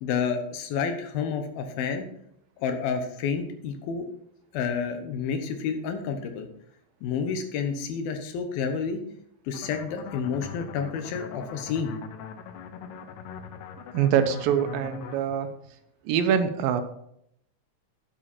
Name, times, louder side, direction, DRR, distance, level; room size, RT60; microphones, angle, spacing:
voice 1, 0.0-2.1 2.6-4.1 4.5-6.5 7.0-9.0 9.5-11.9, left 6 dB, 90° left, 7 dB, 3.0 m, -29 dB
sound 1, 9.5-15.2, left 7 dB, 70° left, 2.0 m, -41 dB
voice 2, 13.9-15.5 16.0-16.8, right 8 dB, 80° right, 8 dB, 2.5 m, -24 dB
10.0 x 7.4 x 4.4 m, 0.73 s
omnidirectional pair, 4.1 m